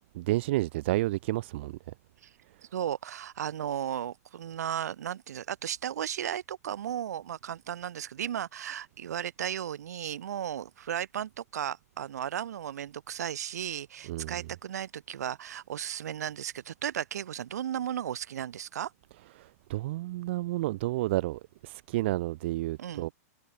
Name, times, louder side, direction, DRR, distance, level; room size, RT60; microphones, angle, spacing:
voice 1, 0.1-1.7 14.1-14.3 19.4-23.1, right 17 dB, 45° right, 0.6 m, -30 dB
voice 2, 2.7-18.9 22.8-23.1, right 10 dB, 75° right, 7.5 m, -35 dB
hypercardioid pair, 165°, 9 cm